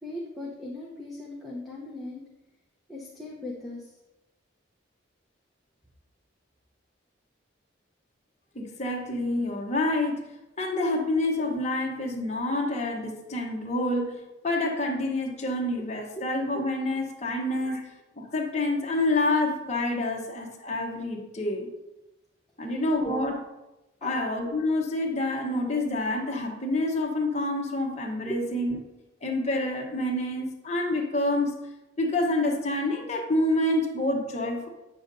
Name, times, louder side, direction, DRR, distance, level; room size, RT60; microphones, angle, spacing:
voice 1, 0.0-2.2 2.9-3.9 16.2-16.3 17.6-17.8 23.0-23.3 24.0-24.2 28.2-28.5, left 1 dB, ahead, -5 dB, 0.8 m, -38 dB
voice 2, 8.5-10.3 10.6-17.9 18.2-21.7 22.6-23.4 24.0-28.8 29.2-31.6 32.0-34.7, left 2 dB, 35° left, 0 dB, 1.0 m, -27 dB
9.1 x 7.0 x 2.7 m, 1.0 s
head